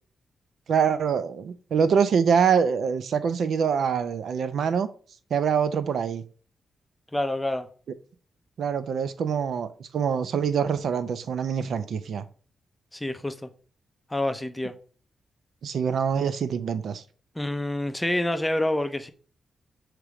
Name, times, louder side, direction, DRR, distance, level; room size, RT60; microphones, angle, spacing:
voice 1, 0.7-4.9 5.3-6.2 8.6-12.2 15.6-17.0, right 7 dB, 65° right, 0.5 m, -25 dB
voice 2, 7.1-7.7 12.9-13.5 14.1-14.7 17.4-19.1, left 1 dB, 10° left, 0.5 m, -27 dB
6.6 x 3.0 x 4.8 m
wide cardioid pair, 150°, 0 cm